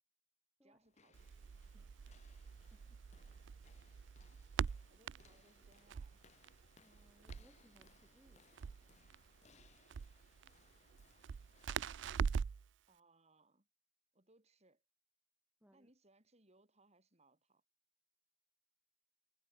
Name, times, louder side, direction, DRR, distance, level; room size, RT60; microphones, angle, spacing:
voice 1, 0.6-1.2 4.9-6.2 12.9-13.7 14.1-14.8 15.7-17.6, right 2 dB, 35° right, 5.6 m, -70 dB
sound 1, 0.8-12.7, left 5 dB, 35° left, 0.8 m, -69 dB
Crackle, 1.1-12.7, right 6 dB, 70° right, 0.4 m, -44 dB
voice 2, 1.7-2.3 2.6-3.1 5.0-5.1 6.8-8.9 15.6-15.9, equal, 10° right, 5.6 m, -70 dB
head